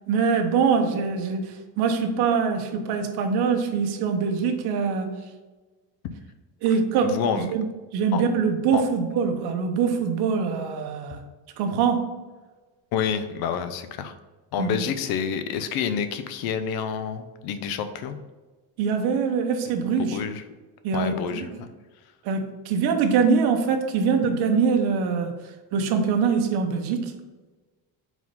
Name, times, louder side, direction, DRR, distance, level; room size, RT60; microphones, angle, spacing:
voice 1, 0.1-5.1 6.6-7.7 7.9-11.2 11.6-12.2 14.6-14.7 18.8-20.2 20.8-21.5 22.2-25.3 25.7-27.1, right 5 dB, 70° right, 5 dB, 1.0 m, -23 dB
voice 2, 7.0-7.5 8.1-8.2 8.7-8.8 12.9-14.1 14.5-18.2 19.7-19.8 20.1-20.4 20.9-21.7, left 7 dB, 65° left, 9 dB, 0.7 m, -28 dB
4.8 x 4.0 x 5.4 m, 1.3 s
cardioid pair, 160°, 40 cm